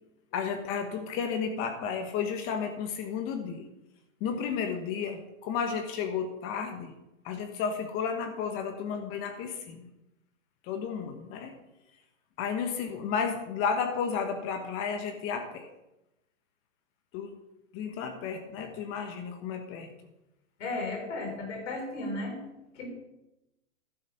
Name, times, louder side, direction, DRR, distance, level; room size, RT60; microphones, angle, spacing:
voice 1, 0.3-3.7 4.2-6.9 7.2-9.9 10.6-11.5 12.4-15.7 17.1-17.3 17.7-19.9, left 6 dB, 30° left, 6 dB, 1.3 m, -32 dB
voice 2, 20.6-22.4 22.8-22.9, left 2 dB, 60° left, 2 dB, 4.3 m, -34 dB
11.5 x 7.2 x 5.6 m, 0.92 s
hypercardioid pair, 140°, 40 cm